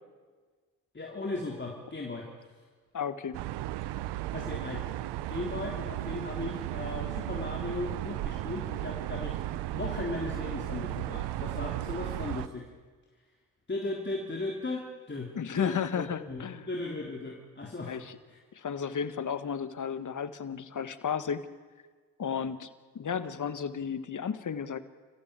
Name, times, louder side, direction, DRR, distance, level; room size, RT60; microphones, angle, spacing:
voice 1, 0.9-2.3 4.3-4.9 5.3-9.4 9.7-12.7 13.7-17.9 18.3-18.4, left 2 dB, 25° left, -1 dB, 3.7 m, -37 dB
voice 2, 2.9-3.4 15.3-16.7 17.9-18.2 18.5-21.4 22.2-22.7 23.0-24.8, left 7 dB, 45° left, 12 dB, 1.7 m, -33 dB
sound 1, 3.3-12.5, right 15 dB, 80° right, 0.9 m, -35 dB
29.0 x 15.0 x 8.3 m, 1.5 s
supercardioid pair, 50°, 40 cm